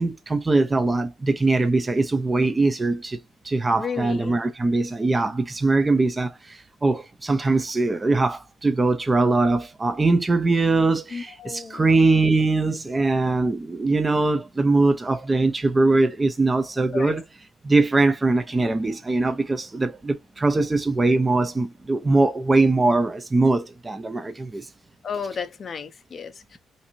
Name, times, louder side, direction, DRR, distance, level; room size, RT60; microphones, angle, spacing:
voice 1, 0.0-3.2 3.4-17.2 17.6-24.7, right 3 dB, 20° right, 0.4 m, -21 dB
voice 2, 3.8-4.4 11.1-11.9 16.9-17.2 25.0-26.6, left 6 dB, 40° left, 0.5 m, -33 dB
2.6 x 2.5 x 2.8 m
cardioid pair, 110°, 0 cm